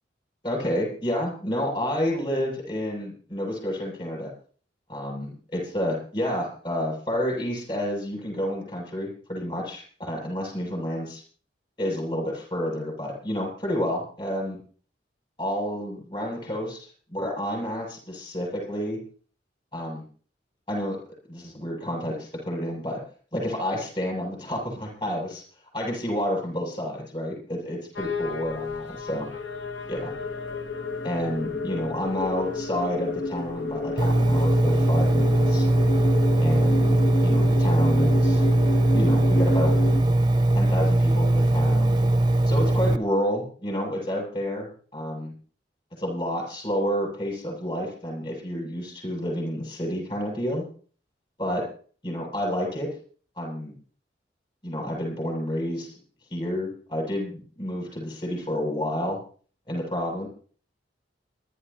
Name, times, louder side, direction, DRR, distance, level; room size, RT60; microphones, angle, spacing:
voice 1, 0.4-4.3 4.9-11.2 11.8-14.6 15.4-19.0 19.7-20.0 20.7-21.0 21.3-23.0 23.3-25.4 25.7-29.3 29.9-30.1 31.0-35.7 36.4-38.4 38.9-39.7 40.5-42.0 42.5-45.3 46.0-50.6 51.4-51.6 52.0-52.9 53.4-53.8 54.6-55.9 56.3-59.2 59.7-60.3, equal, 30° left, -1 dB, 7.8 m, -29 dB
sound 1, 28.0-40.0, left 1 dB, 85° left, 1.2 m, -30 dB
Engine, 34.0-43.0, right 1 dB, 25° right, 0.6 m, -20 dB
28.5 x 11.5 x 2.9 m, 0.43 s
head